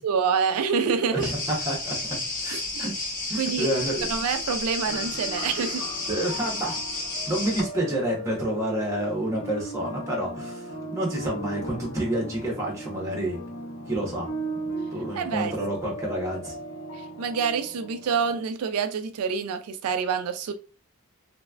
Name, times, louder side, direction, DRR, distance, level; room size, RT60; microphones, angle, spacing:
voice 1, 0.0-1.3 3.4-3.7 4.1-5.9 15.2-15.5 16.9-20.5, right 6 dB, 85° right, 9 dB, 0.4 m, -27 dB
voice 2, 1.1-2.9 3.3-4.2 6.1-6.8 7.3-13.4 13.9-14.3 14.9-16.5, right 1 dB, 15° right, -2 dB, 1.2 m, -29 dB
sound 1, 1.2-7.6, left 2 dB, 40° left, 1.0 m, -32 dB
sound 2, 4.9-18.4, right 1 dB, 70° left, 1.2 m, -38 dB
3.3 x 3.1 x 2.4 m, 0.35 s
head